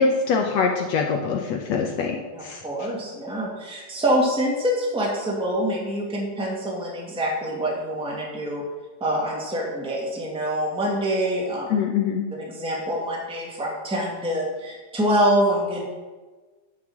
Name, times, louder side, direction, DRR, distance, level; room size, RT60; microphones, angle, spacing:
voice 1, 0.0-2.6 11.7-12.3, left 5 dB, 75° left, 1 dB, 1.7 m, -23 dB
voice 2, 2.3-8.6 9.0-11.7 12.4-15.8, equal, ahead, -3 dB, 1.6 m, -25 dB
10.5 x 6.0 x 6.2 m, 1.3 s
omnidirectional pair, 3.9 m